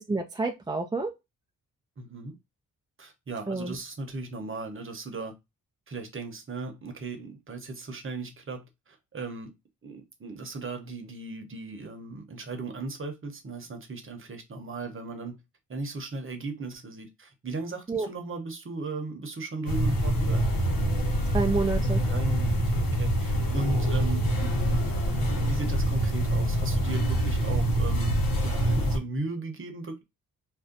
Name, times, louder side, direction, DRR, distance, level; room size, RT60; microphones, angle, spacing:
voice 1, 0.1-1.1 3.5-3.8 17.9-18.1 21.3-22.0, right 3 dB, 15° right, 0.3 m, -28 dB
voice 2, 2.0-2.4 3.0-5.3 5.9-9.5 9.8-15.4 15.7-20.4 22.1-24.5 24.8-28.1 28.4-30.0, right 3 dB, 35° right, 0.9 m, -37 dB
sound 1, 19.7-29.0, right 1 dB, 70° left, 1.0 m, -25 dB
2.6 x 2.1 x 3.7 m
cardioid pair, 85°, 35 cm